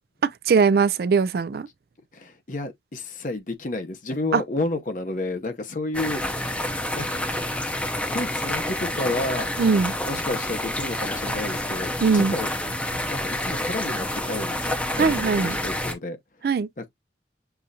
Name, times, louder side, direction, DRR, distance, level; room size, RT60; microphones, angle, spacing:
voice 1, 0.5-1.7 4.3-4.4 9.6-9.9 12.0-12.4 15.0-15.6 16.4-16.7, right 5 dB, 60° right, 0.3 m, -20 dB
voice 2, 2.1-6.2 6.9-7.2 8.1-9.5 10.1-12.5 13.1-16.2 16.8-16.9, left 2 dB, 45° left, 0.8 m, -31 dB
sound 1, 5.9-15.9, left 1 dB, 5° left, 0.6 m, -28 dB
6.9 x 2.4 x 2.7 m
head